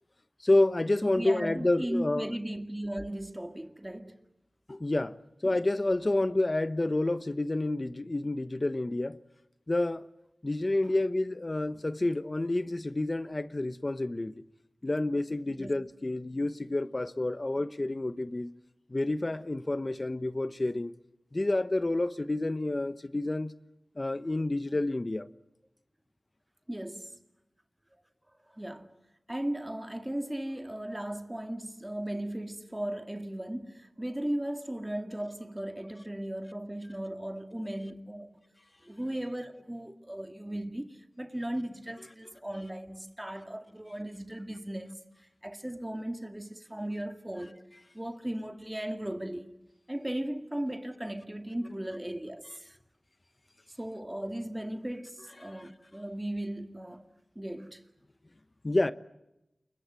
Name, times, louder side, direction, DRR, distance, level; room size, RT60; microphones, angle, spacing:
voice 1, 0.4-2.3 4.7-5.2 5.4-9.2 9.7-10.1 10.4-14.4 14.8-18.5 18.9-20.9 21.3-23.5 24.0-25.3 55.4-55.7 58.6-58.9, left 2 dB, 40° left, 1.0 m, -29 dB
voice 2, 1.0-4.2 5.4-5.6 15.6-15.7 26.7-27.2 28.5-29.0 29.3-38.5 38.9-45.0 45.4-47.6 47.9-49.6 49.9-52.8 53.7-57.1 57.4-57.8, right 1 dB, 15° right, 2.1 m, -37 dB
29.0 x 23.0 x 7.6 m
wide cardioid pair, 70°, 0 cm